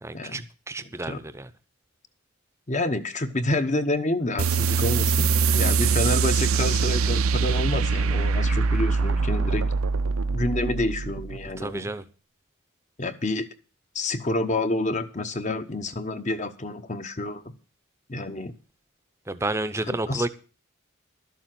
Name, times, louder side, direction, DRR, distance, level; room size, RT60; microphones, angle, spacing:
voice 1, 0.0-1.5 4.7-4.8 5.5-5.6 11.6-12.0 19.3-20.3, right 2 dB, 10° right, 0.7 m, -31 dB
voice 2, 2.7-9.7 10.3-11.9 13.0-13.5 13.9-17.5 18.1-18.5 19.9-20.3, left 2 dB, 35° left, 1.0 m, -28 dB
sound 1, 4.4-11.5, right 4 dB, 70° right, 0.6 m, -23 dB
12.5 x 7.2 x 7.6 m
head